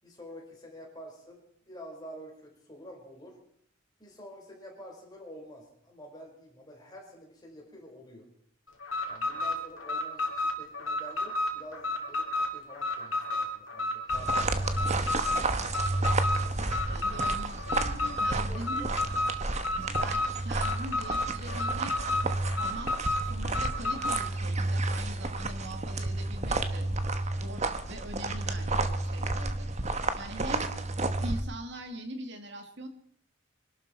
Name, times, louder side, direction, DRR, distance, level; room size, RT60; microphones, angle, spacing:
voice 1, 0.0-1.4 1.7-3.4 4.0-8.3 9.1-16.6 18.2-19.0, equal, 20° left, -1 dB, 4.7 m, -48 dB
Alarm, 8.8-24.3, left 2 dB, 75° left, 2.8 m, -31 dB
sound 1, 14.1-31.4, right 2 dB, 35° right, 1.1 m, -31 dB
voice 2, 16.6-18.9 19.8-22.1 22.6-22.9 23.3-26.9 27.3-30.7 31.2-32.9, right 1 dB, 55° right, 6 dB, 1.8 m, -42 dB
25.0 x 12.0 x 4.4 m, 0.67 s
head